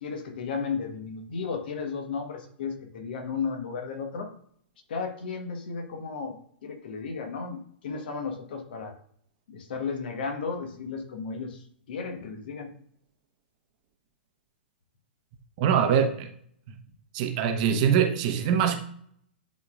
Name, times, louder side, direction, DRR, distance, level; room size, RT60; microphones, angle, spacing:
voice 1, 0.0-4.3 4.9-6.3 6.6-8.9 9.5-12.7, left 5 dB, 60° left, 4 dB, 1.4 m, -34 dB
voice 2, 15.6-16.3 16.7-16.8 17.1-18.8, right 8 dB, 45° right, 5 dB, 1.0 m, -23 dB
11.0 x 4.2 x 2.5 m, 0.64 s
figure-of-eight pair, 110°, 6 cm